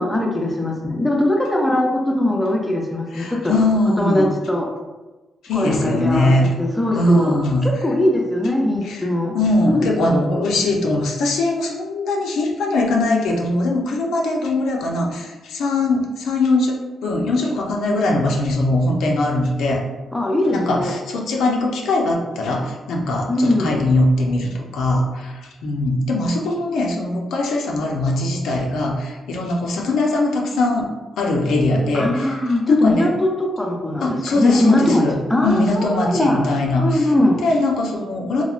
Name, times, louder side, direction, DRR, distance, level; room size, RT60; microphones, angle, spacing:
voice 1, 0.0-3.5 4.0-4.7 5.5-7.4 7.6-9.4 9.7-10.2 20.1-21.0 23.3-23.8 31.9-36.5 36.8-37.4, left 1 dB, 10° left, 0 dB, 0.4 m, -20 dB
voice 2, 3.1-4.3 5.4-6.5 6.9-7.7 8.8-9.0 9.3-19.8 20.5-30.9 31.2-32.3 32.7-33.1 34.0-35.2 35.4-37.1 37.4-38.4, left 2 dB, 90° left, 0 dB, 0.4 m, -21 dB
3.0 x 2.1 x 2.4 m, 1.2 s
cardioid pair, 130°, 0 cm